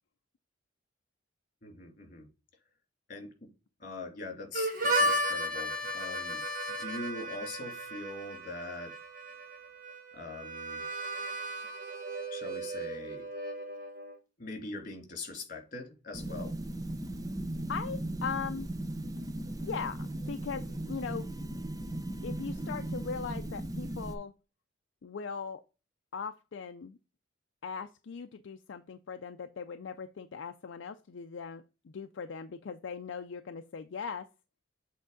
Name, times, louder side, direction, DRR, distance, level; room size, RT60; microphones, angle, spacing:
voice 1, 1.6-2.3 3.1-3.5 3.8-6.4 6.8-9.0 10.1-10.8 12.3-13.3 14.4-16.6, left 2 dB, 45° left, 2.8 m, -42 dB
Harmonica, 4.5-14.2, right 1 dB, 45° right, 1.5 m, -35 dB
sound 1, 16.1-24.2, right 1 dB, 20° right, 0.5 m, -37 dB
voice 2, 17.7-18.7 19.6-21.3 22.2-24.3 25.0-25.6 26.1-27.0 27.6-34.3, left 5 dB, 70° left, 0.4 m, -39 dB
7.8 x 3.5 x 3.8 m
head